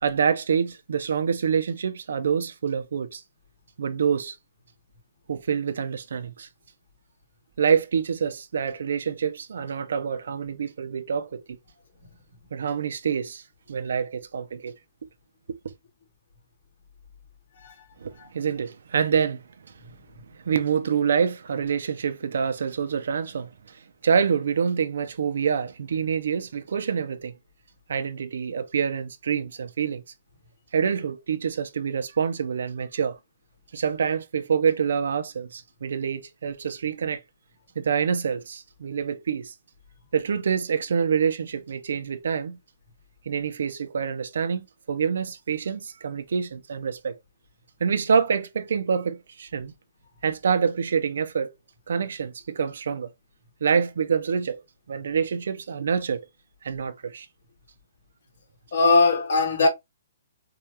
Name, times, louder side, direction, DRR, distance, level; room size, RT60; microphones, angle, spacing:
voice 1, 0.0-3.2 3.8-4.4 5.3-6.5 7.6-11.4 12.5-14.7 18.0-19.4 20.5-23.8 24.0-27.3 27.9-30.0 30.7-33.2 33.7-37.2 37.8-39.5 40.1-42.6 43.3-47.2 47.8-49.7 50.2-51.5 51.9-53.1 53.6-54.6 54.9-56.2 56.6-57.3, right 6 dB, 70° right, 0.5 m, -26 dB
voice 2, 58.7-59.7, left 3 dB, 65° left, 2.3 m, -20 dB
4.8 x 2.4 x 2.7 m
hypercardioid pair, 170°, 0 cm